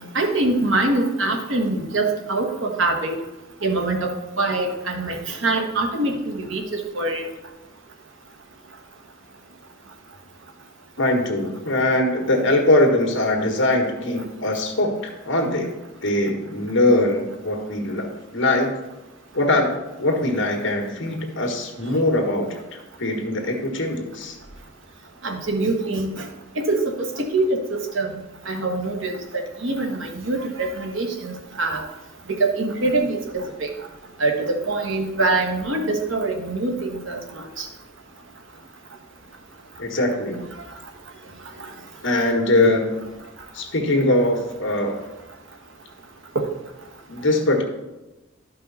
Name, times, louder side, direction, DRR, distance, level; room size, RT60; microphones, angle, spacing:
voice 1, 0.1-3.1 3.6-7.3 14.0-14.2 25.2-26.2 26.6-28.2 28.5-31.8 32.3-33.7 34.2-37.7 46.3-46.4, right 2 dB, 70° right, 3 dB, 1.3 m, -24 dB
voice 2, 11.0-15.8 16.0-18.8 19.3-19.7 20.0-24.4 39.8-40.5 42.0-43.0 43.5-45.1 47.1-47.6, left 1 dB, 65° left, 3 dB, 1.6 m, -21 dB
12.0 x 5.4 x 4.1 m, 1.0 s
head